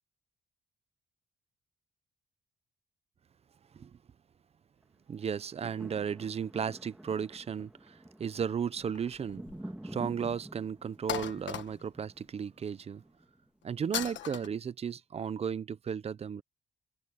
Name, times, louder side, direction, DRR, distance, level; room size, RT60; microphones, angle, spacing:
voice 1, 5.1-9.4 9.8-13.0 13.6-16.4, right 7 dB, 30° right, 0.5 m, -35 dB
sound 1, 5.2-13.5 14.0-14.1, right 1 dB, 5° right, 1.4 m, -48 dB
sound 2, 8.8-9.7 10.1-10.2 11.1-12.1 13.9-14.5, left 10 dB, 70° left, 1.3 m, -37 dB
wide cardioid pair, 170°, 20 cm